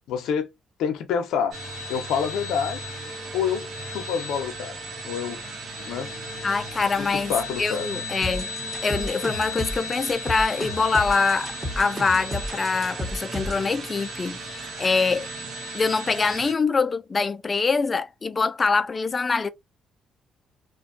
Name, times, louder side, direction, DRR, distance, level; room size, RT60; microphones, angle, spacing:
voice 1, 0.1-0.5 0.8-1.6 1.9-2.8 3.3-4.7 5.0-5.4 5.9-6.1 7.0-7.9, left 7 dB, 85° left, 0.6 m, -27 dB
sound 1, 1.5-16.5, equal, 65° right, 1.0 m, -35 dB
voice 2, 6.4-7.3 7.6-8.5 8.8-15.3 15.7-19.5, left 4 dB, 30° left, 0.3 m, -24 dB
sound 2, 8.2-13.7, equal, 20° right, 1.2 m, -32 dB
2.4 x 2.2 x 2.6 m
cardioid pair, 90°, 0 cm